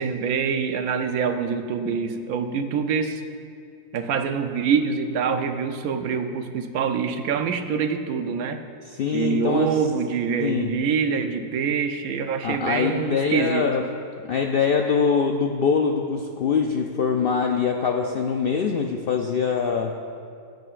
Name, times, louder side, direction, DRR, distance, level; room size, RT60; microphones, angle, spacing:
voice 1, 0.0-3.2 3.9-8.6 9.1-13.7, right 6 dB, 85° right, 7 dB, 1.1 m, -25 dB
voice 2, 8.9-9.7 10.4-10.7 12.4-13.8 14.3-19.9, left 6 dB, 70° left, 2 dB, 0.5 m, -23 dB
16.5 x 7.8 x 2.5 m, 2.3 s
omnidirectional pair, 1.5 m